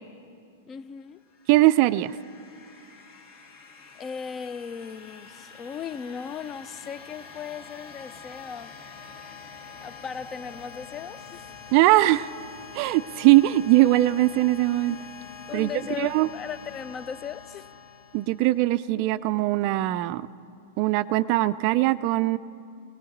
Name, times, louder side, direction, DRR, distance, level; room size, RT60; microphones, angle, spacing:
voice 1, 0.7-1.2 3.9-8.8 9.8-11.5 15.5-17.7, left 7 dB, 25° left, 16 dB, 0.5 m, -37 dB
sound 1, 1.2-18.8, left 6 dB, 50° left, 2.4 m, -45 dB
voice 2, 1.5-2.2 11.7-12.3 12.7-15.0 15.5-15.7 16.0-16.3 18.1-20.3 20.8-22.4, right 17 dB, 45° right, 17 dB, 0.3 m, -21 dB
18.5 x 18.0 x 3.9 m, 2.6 s
figure-of-eight pair, 100°, 0 cm